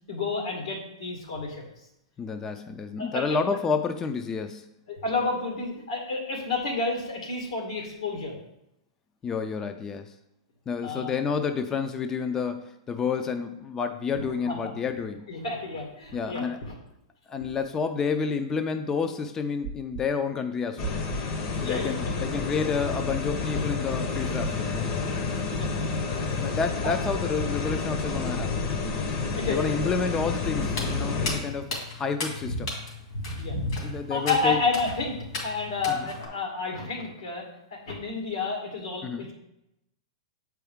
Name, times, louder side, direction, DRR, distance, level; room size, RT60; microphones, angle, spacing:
voice 1, 0.1-1.6 3.0-3.4 4.9-8.4 10.8-11.1 14.5-14.7 15.3-16.8 17.4-17.6 21.6-22.3 25.5-25.8 26.8-26.9 29.4-29.9 33.4-33.6 33.8-37.5 37.7-39.3, left 3 dB, 85° left, 0 dB, 2.1 m, -30 dB
voice 2, 2.2-4.7 9.2-10.1 10.7-15.3 16.1-16.6 17.3-21.0 21.6-24.9 26.4-28.6 29.5-31.7 31.9-32.7 33.8-34.6 35.9-36.1 39.0-39.3, left 5 dB, 15° left, 8 dB, 0.4 m, -29 dB
sound 1, 19.6-20.0 20.8-21.2 22.1-22.5 23.2-23.6 24.4-24.8 25.6-26.0 26.8-27.2 28.1-28.5 29.4-29.8 30.6-31.0, right 6 dB, 55° right, 0.6 m, -37 dB
sound 2, 20.8-31.4, left 4 dB, 45° left, 0.9 m, -29 dB
Walk footsteps, 30.7-36.3, left 2 dB, 70° left, 2.4 m, -34 dB
7.7 x 4.6 x 3.5 m, 0.85 s
hypercardioid pair, 140°, 3 cm